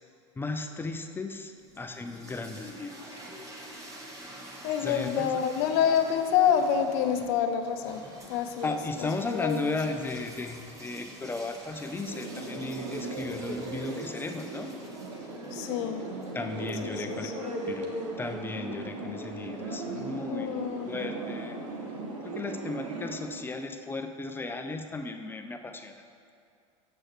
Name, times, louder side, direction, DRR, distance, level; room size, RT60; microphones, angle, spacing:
voice 1, 0.4-3.3 4.8-5.4 8.6-14.7 16.3-17.3 17.7-17.9 18.2-20.5 20.9-21.6 22.2-26.0, left 3 dB, 15° left, 6 dB, 0.4 m, -35 dB
sound 1, 1.5-17.6, right 1 dB, 20° right, 1.2 m, -48 dB
voice 2, 4.6-8.0 8.3-10.0 15.5-16.0 16.9-17.6 20.3-20.9, left 8 dB, 60° left, 6 dB, 0.6 m, -28 dB
sound 2, 12.1-23.2, right 2 dB, 90° right, 1.1 m, -37 dB
7.6 x 6.2 x 3.2 m, 2.3 s
hypercardioid pair, 100°, 16 cm